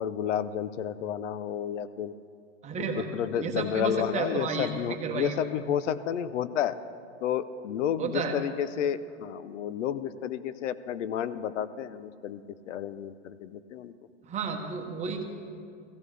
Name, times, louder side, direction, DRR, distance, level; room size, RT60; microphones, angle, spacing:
voice 1, 0.0-2.1 2.8-6.8 7.2-13.9, left 9 dB, 85° left, 15 dB, 0.7 m, -31 dB
voice 2, 2.6-3.1 3.4-5.3 8.0-8.3 14.2-15.2, right 4 dB, 20° right, 3 dB, 0.9 m, -32 dB
16.0 x 14.5 x 3.3 m, 2.3 s
supercardioid pair, 145°, 36 cm